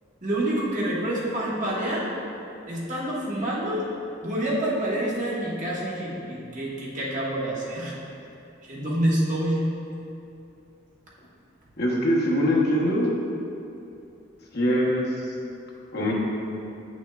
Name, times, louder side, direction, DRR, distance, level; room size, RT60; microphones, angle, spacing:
voice 1, 0.2-2.1 2.7-3.8 4.2-8.0 8.6-9.6, right 1 dB, 40° right, -6 dB, 1.2 m, -27 dB
voice 2, 11.8-13.1 14.5-15.1 15.9-16.1, equal, 60° left, -4 dB, 1.0 m, -22 dB
8.0 x 6.1 x 2.3 m, 2.6 s
head